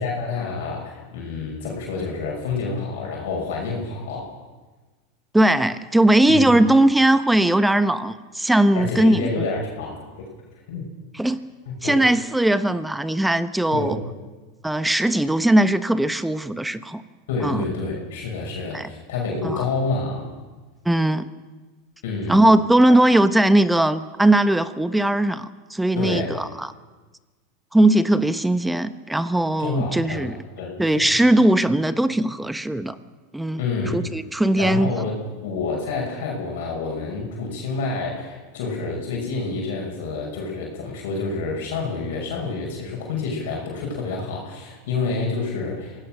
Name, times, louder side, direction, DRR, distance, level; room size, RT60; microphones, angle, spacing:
voice 1, 0.0-4.3 6.3-6.5 8.7-10.2 10.7-10.8 11.7-12.0 13.7-14.0 17.3-20.3 22.0-22.4 22.9-23.0 26.0-26.4 29.6-31.1 33.6-34.1 34.5-46.1, left 4 dB, 70° left, -1 dB, 5.9 m, -28 dB
voice 2, 5.3-9.5 11.1-11.4 11.8-14.0 14.6-17.0 17.4-17.6 18.7-18.9 19.4-19.6 20.8-21.3 22.3-26.7 27.7-30.3 30.8-33.0 33.3-33.6 33.9-34.9, right 1 dB, 5° right, 12 dB, 1.2 m, -19 dB
27.0 x 17.5 x 6.3 m, 1.3 s
hypercardioid pair, 90°, 0 cm